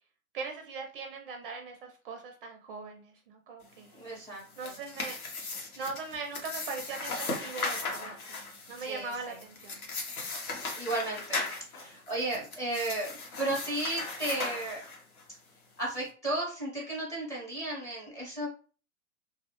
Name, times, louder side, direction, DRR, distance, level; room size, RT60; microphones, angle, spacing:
voice 1, 0.3-3.9 4.6-5.2 5.8-9.8, right 4 dB, 45° right, 4 dB, 0.4 m, -40 dB
voice 2, 3.9-4.8 8.8-9.4 10.8-14.8 15.8-18.5, right 2 dB, 10° left, -3 dB, 0.6 m, -34 dB
sound 1, 4.3-15.2, left 3 dB, 90° left, 1.0 m, -37 dB
2.4 x 2.0 x 2.8 m, 0.38 s
hypercardioid pair, 140°, 42 cm